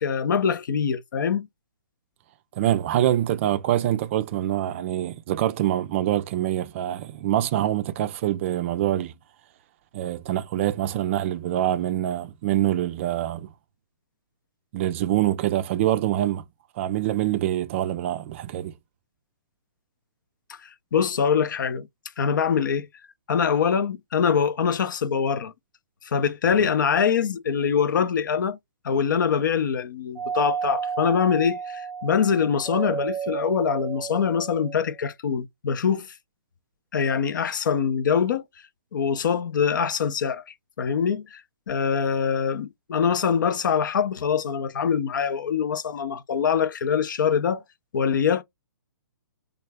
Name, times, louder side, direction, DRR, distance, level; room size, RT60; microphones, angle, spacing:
voice 1, 0.0-1.5 20.6-21.9 22.2-22.9 23.3-25.5 26.0-28.6 28.8-36.1 36.9-38.4 38.9-40.4 40.8-41.4 41.7-47.6 47.9-48.4, left 7 dB, 60° left, 0.6 m, -24 dB
voice 2, 2.6-9.1 9.9-13.5 14.7-16.4 16.8-18.7 26.5-26.7, right 12 dB, 35° right, 0.4 m, -25 dB
Doorbell, 30.2-35.0, right 7 dB, 5° right, 0.8 m, -32 dB
3.2 x 2.4 x 3.3 m
hypercardioid pair, 130°, 12 cm